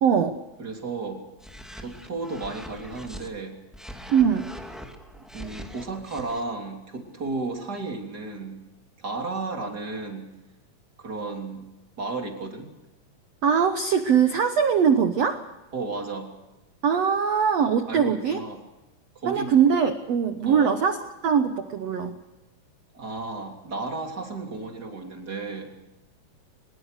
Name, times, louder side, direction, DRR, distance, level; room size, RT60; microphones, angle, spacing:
voice 1, 0.0-0.3 4.1-4.5 13.4-15.5 16.8-18.4 19.2-21.0 21.2-22.2, right 7 dB, 75° right, 8 dB, 1.5 m, -21 dB
voice 2, 0.6-1.2 1.8-3.6 5.3-8.6 9.0-10.3 11.0-11.7 12.0-12.7 15.7-16.3 17.9-18.6 19.1-19.5 20.4-20.7 22.9-25.7, right 3 dB, 25° right, 2 dB, 3.3 m, -33 dB
sound 1, 1.4-3.3 3.7-6.4, equal, ahead, 1.2 m, -42 dB
23.5 x 21.5 x 6.6 m, 1.1 s
omnidirectional pair, 4.6 m